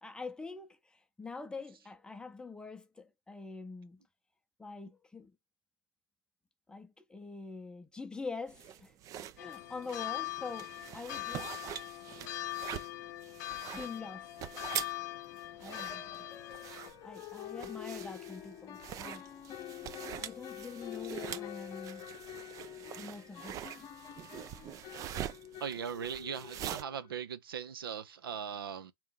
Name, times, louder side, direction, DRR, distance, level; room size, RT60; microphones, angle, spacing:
voice 1, 0.0-4.0 4.6-5.3 6.7-8.9 9.4-11.5 13.7-14.3 15.6-16.3 17.0-19.3 20.2-22.1 23.0-23.9, left 4 dB, 5° left, 0.7 m, -45 dB
sound 1, 8.5-26.8, right 10 dB, 30° right, 0.4 m, -44 dB
sound 2, 9.4-16.9, left 17 dB, 50° left, 0.5 m, -42 dB
sound 3, 11.7-11.8 12.2-12.4 12.7-12.8 15.7-27.1, left 12 dB, 30° left, 0.8 m, -47 dB
voice 2, 25.6-28.9, right 8 dB, 75° right, 0.6 m, -39 dB
3.7 x 3.0 x 3.6 m
hypercardioid pair, 105°, 12 cm